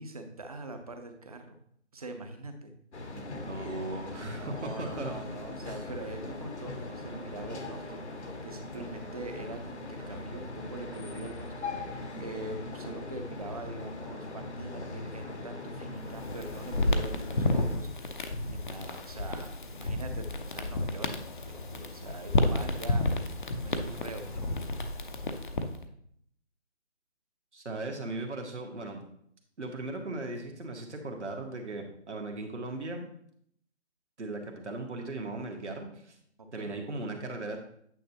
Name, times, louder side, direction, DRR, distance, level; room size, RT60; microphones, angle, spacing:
voice 1, 0.0-1.6 1.9-2.7 4.4-8.0 8.4-24.7 36.5-36.7, right 2 dB, 30° right, 6 dB, 0.8 m, -43 dB
sound 1, 2.9-17.8, left 2 dB, 70° left, 1.4 m, -40 dB
voice 2, 3.1-5.1 27.5-29.0 29.6-33.1 34.2-36.2 36.5-37.6, right 2 dB, 75° right, 2 dB, 1.7 m, -38 dB
sound 2, 16.0-25.8, left 2 dB, 45° left, 0.7 m, -31 dB
9.1 x 6.2 x 2.9 m, 0.67 s
figure-of-eight pair, 160°, 35 cm